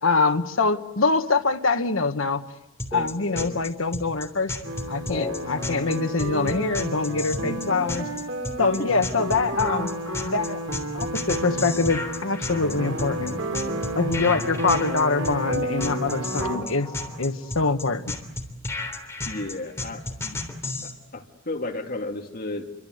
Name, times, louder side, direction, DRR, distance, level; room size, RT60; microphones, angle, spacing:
voice 1, 0.0-2.4 2.9-4.5 4.9-8.1 8.6-9.9 10.2-10.6 10.9-13.4 13.9-16.9 17.2-18.1, left 4 dB, 75° left, 8 dB, 1.3 m, -24 dB
sound 1, 2.8-20.9, left 2 dB, 15° left, 3.3 m, -33 dB
sound 2, 4.6-16.6, right 1 dB, 80° right, 5.6 m, -31 dB
voice 2, 19.3-20.4 20.8-22.7, left 2 dB, 45° left, 3 dB, 2.4 m, -33 dB
29.5 x 24.5 x 8.0 m, 0.98 s
head